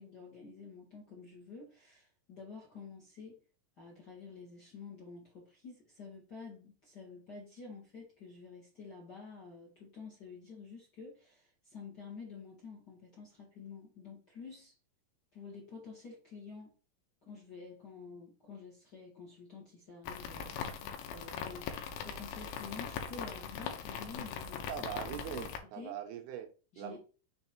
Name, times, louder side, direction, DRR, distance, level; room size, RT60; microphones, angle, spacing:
voice 1, 0.0-3.4 3.8-14.7 15.3-16.7 17.2-21.7 22.0-24.9 25.3-25.9 26.7-27.0, left 5 dB, 45° left, -3 dB, 1.4 m, -49 dB
sound 1, 20.1-25.6, left 7 dB, 85° left, 2.7 m, -41 dB
voice 2, 24.7-27.0, right 10 dB, 85° right, 6 dB, 2.7 m, -42 dB
6.3 x 3.4 x 4.3 m, 0.36 s
omnidirectional pair, 4.4 m